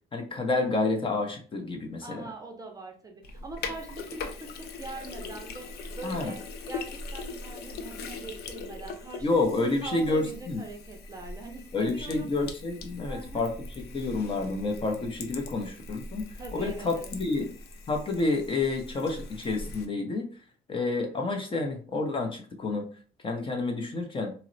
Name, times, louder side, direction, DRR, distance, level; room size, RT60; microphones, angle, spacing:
voice 1, 0.1-2.3 6.0-6.3 9.2-10.6 11.7-16.2 16.5-17.5 17.9-20.3 20.7-22.9 23.2-24.3, left 3 dB, 30° left, 4 dB, 0.7 m, -29 dB
voice 2, 2.0-6.4 6.7-12.4 12.9-13.5 16.4-17.1, right 3 dB, 20° right, 2 dB, 0.6 m, -43 dB
Sink (filling or washing), 3.2-19.9, left 3 dB, 70° left, 0.5 m, -41 dB
4.0 x 2.0 x 2.6 m, 0.41 s
cardioid pair, 110°, 17 cm